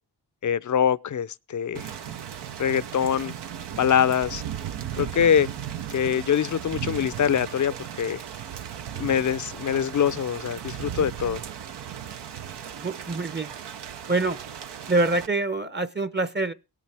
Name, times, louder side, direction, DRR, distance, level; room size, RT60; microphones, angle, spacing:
voice 1, 0.4-1.9 2.6-3.3 3.8-4.4 5.0-5.5 5.9-8.2 8.9-11.4, left 8 dB, 45° left, 0.5 m, -24 dB
Thunder / Rain, 1.7-15.3, right 9 dB, 80° right, 0.8 m, -36 dB
voice 2, 12.8-13.5 14.1-14.4 14.9-16.5, right 2 dB, 25° right, 0.7 m, -25 dB
18.0 x 8.3 x 3.4 m
cardioid pair, 50°, 40 cm